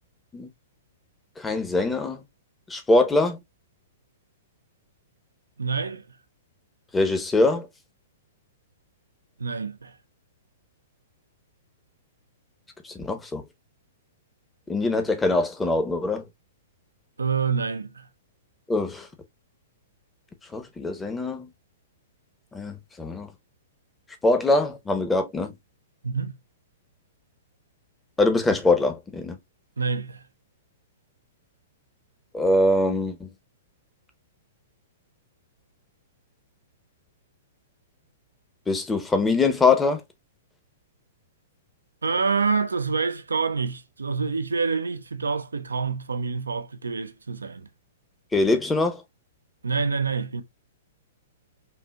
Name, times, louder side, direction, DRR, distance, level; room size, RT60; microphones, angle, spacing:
voice 1, 1.4-2.2 2.7-3.4 6.9-7.7 12.9-13.4 14.7-16.2 18.7-19.1 20.5-21.5 22.5-23.3 24.2-25.5 28.2-29.4 32.3-33.3 38.7-40.0 48.3-49.0, left 2 dB, 10° left, 0.9 m, -23 dB
voice 2, 5.6-6.0 9.4-9.9 17.2-18.1 26.0-26.4 29.8-30.2 42.0-47.7 49.6-50.4, right 5 dB, 80° right, 0.6 m, -27 dB
5.5 x 2.5 x 2.3 m
figure-of-eight pair, 115°, 0 cm